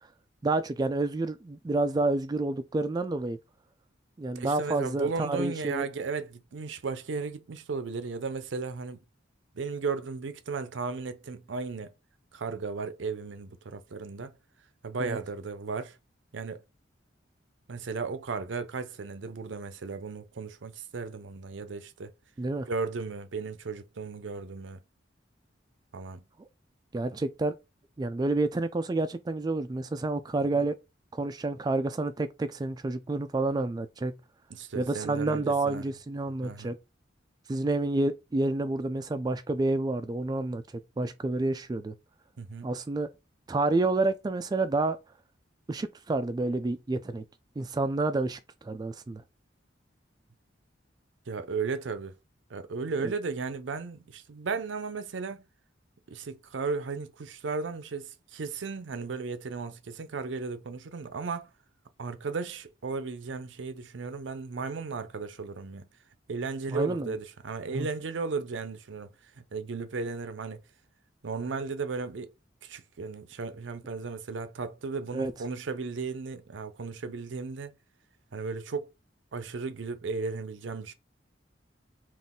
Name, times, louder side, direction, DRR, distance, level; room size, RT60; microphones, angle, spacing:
voice 1, 0.4-3.4 4.2-5.8 15.0-15.2 22.4-22.7 26.9-27.5 28.0-30.8 31.1-34.2 34.8-36.8 37.5-40.6 41.0-41.9 42.6-43.1 43.5-45.0 45.7-47.2 47.6-49.2 53.0-53.1 66.7-67.1 67.7-67.9 75.1-75.3, right 2 dB, 20° right, 0.3 m, -29 dB
voice 2, 4.3-9.0 9.5-11.9 12.3-14.3 14.8-16.0 16.3-16.6 17.7-22.1 22.6-24.8 25.9-26.2 30.6-30.7 34.5-35.8 36.4-36.7 42.4-42.7 51.3-52.2 52.5-55.4 56.1-61.5 62.0-65.9 66.3-70.6 71.2-72.3 72.6-77.7 78.3-78.9 79.3-80.9, right 4 dB, 75° right, 0.5 m, -35 dB
4.0 x 2.4 x 3.6 m
head